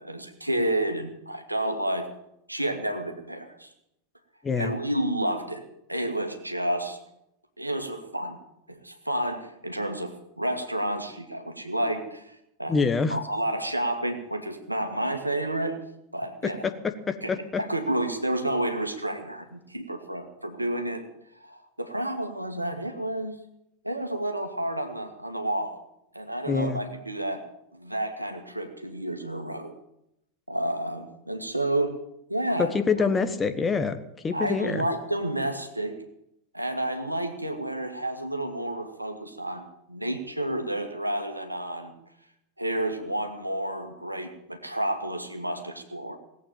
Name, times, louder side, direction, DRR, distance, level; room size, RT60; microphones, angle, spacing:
voice 1, 0.0-2.1 2.5-3.7 4.6-5.6 5.9-7.0 7.6-8.4 8.7-12.8 13.1-15.8 16.1-16.7 17.2-17.3 17.6-21.0 21.4-23.4 23.8-25.8 26.1-27.4 27.7-29.7 30.5-32.0 32.3-32.7 33.0-33.1 34.3-36.0 36.5-41.9 42.6-46.2, right 1 dB, 85° right, 5 dB, 1.8 m, -30 dB
voice 2, 12.7-13.2 17.1-17.4 26.5-26.8 32.6-34.0 34.2-34.8, left 5 dB, 15° left, 9 dB, 1.3 m, -25 dB
18.0 x 8.5 x 8.9 m, 0.82 s
figure-of-eight pair, 90°, 0 cm